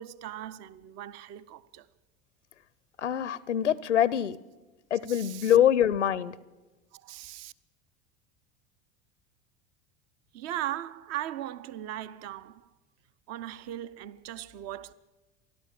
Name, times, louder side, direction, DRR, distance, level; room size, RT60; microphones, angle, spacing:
voice 1, 0.0-1.9 5.1-5.6 6.9-7.5 10.3-12.7 13.3-14.9, right 12 dB, 45° right, 0.8 m, -38 dB
voice 2, 3.0-4.4 4.9-6.3, left 10 dB, 85° left, 0.6 m, -24 dB
29.0 x 12.0 x 7.4 m
figure-of-eight pair, 75°, 35 cm